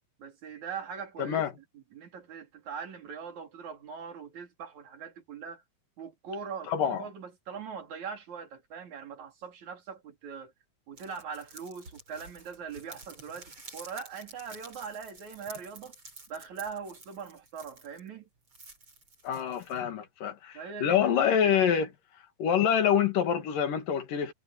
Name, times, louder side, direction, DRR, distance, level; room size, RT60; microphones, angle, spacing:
voice 1, 0.2-1.5 1.7-5.6 6.0-10.5 10.9-15.9 16.3-18.3 20.5-21.8, right 6 dB, 60° right, 4.6 m, -41 dB
voice 2, 1.2-1.5 6.7-7.0 19.2-21.9 22.4-24.3, left 8 dB, 80° left, 3.9 m, -26 dB
sound 1, 11.0-18.1 18.5-19.8, right 3 dB, 35° right, 7.2 m, -50 dB
omnidirectional pair, 3.8 m